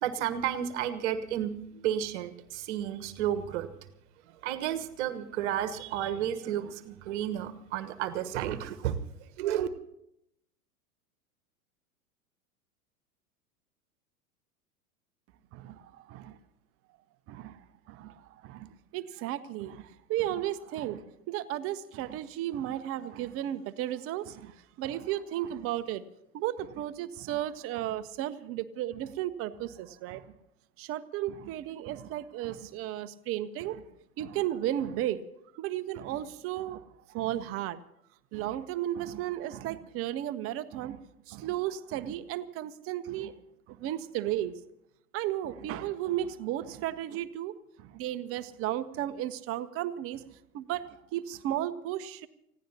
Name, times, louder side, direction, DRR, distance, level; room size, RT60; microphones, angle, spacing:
voice 1, 0.0-3.7 4.4-9.0 9.4-9.7, right 10 dB, 50° right, 11 dB, 1.4 m, -32 dB
voice 2, 15.5-16.4 17.3-26.0 26.3-30.2 30.8-33.8 34.2-35.2 35.5-37.8 38.3-43.3 43.7-44.6 45.1-50.2 50.5-52.3, right 12 dB, 30° right, 13 dB, 0.8 m, -34 dB
30.0 x 16.0 x 2.9 m, 0.81 s
figure-of-eight pair, 90°, 44 cm